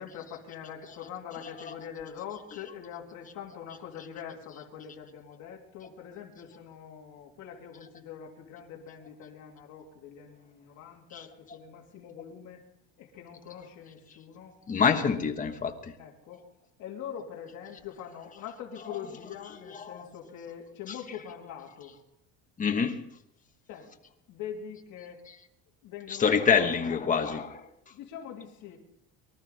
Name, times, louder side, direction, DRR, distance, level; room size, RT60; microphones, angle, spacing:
voice 1, 0.0-12.6 13.0-14.6 16.0-16.4 16.8-22.0 23.7-23.9 24.3-25.2 25.8-26.6 26.9-27.2 27.9-28.8, left 8 dB, 55° left, 3.0 m, -43 dB
voice 2, 14.7-15.9 19.8-20.0 22.6-23.0 26.1-27.6, left 6 dB, 20° left, 1.3 m, -26 dB
24.0 x 13.0 x 4.2 m
cardioid pair, 165°, 36 cm